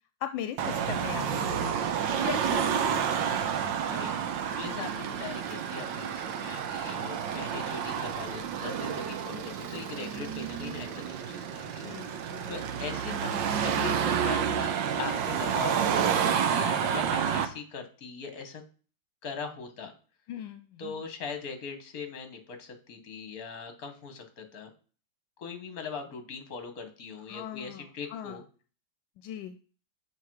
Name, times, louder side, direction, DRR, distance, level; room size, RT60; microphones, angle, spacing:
voice 1, 0.2-3.1 11.8-12.5 20.3-21.0 27.3-28.4 29.2-29.6, left 10 dB, 80° left, 9 dB, 1.3 m, -39 dB
Car passing by / Traffic noise roadway noise / Engine, 0.6-17.5, right 8 dB, 80° right, 1.5 m, -30 dB
voice 2, 3.8-14.7 15.0-18.6 19.2-19.9 20.8-24.7 25.4-28.4, left 5 dB, 55° left, 7 dB, 1.6 m, -41 dB
6.7 x 5.8 x 4.6 m, 0.39 s
omnidirectional pair, 2.0 m